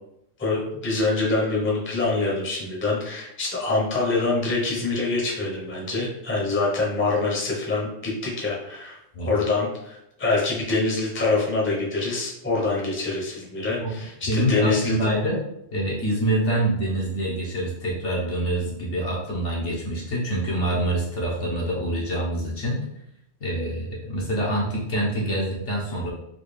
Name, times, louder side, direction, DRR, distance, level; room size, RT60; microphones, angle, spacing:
voice 1, 0.4-15.0, left 3 dB, 10° left, -4 dB, 0.7 m, -25 dB
voice 2, 14.2-15.4 15.7-22.8 23.4-26.1, right 1 dB, 70° left, -4 dB, 1.2 m, -25 dB
4.0 x 2.3 x 3.3 m, 0.78 s
omnidirectional pair, 1.3 m